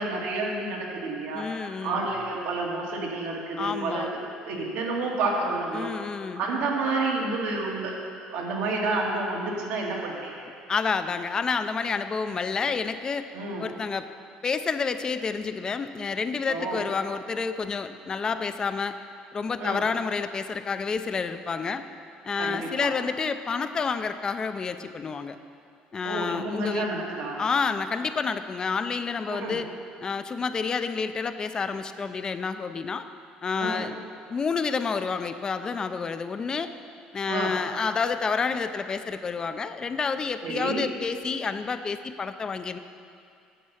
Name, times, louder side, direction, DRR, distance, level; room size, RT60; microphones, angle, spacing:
voice 1, 0.0-1.4 1.8-4.2 4.5-6.1 6.4-8.0 8.3-10.5 13.3-13.7 16.5-16.8 19.6-19.8 22.4-22.9 26.0-27.5 29.3-29.6 33.6-33.9 37.3-37.5 40.4-40.9, right 3 dB, 85° right, -2 dB, 1.9 m, -29 dB
voice 2, 1.3-2.1 3.6-4.1 5.7-6.4 10.7-13.3 13.6-14.1 14.4-19.0 19.3-21.8 22.2-25.4 25.9-26.9 27.4-29.7 30.0-33.0 33.4-34.0 34.3-36.7 37.1-42.8, left 5 dB, 25° left, 10 dB, 0.4 m, -29 dB
9.3 x 7.2 x 5.7 m, 2.4 s
cardioid pair, 125°, 3 cm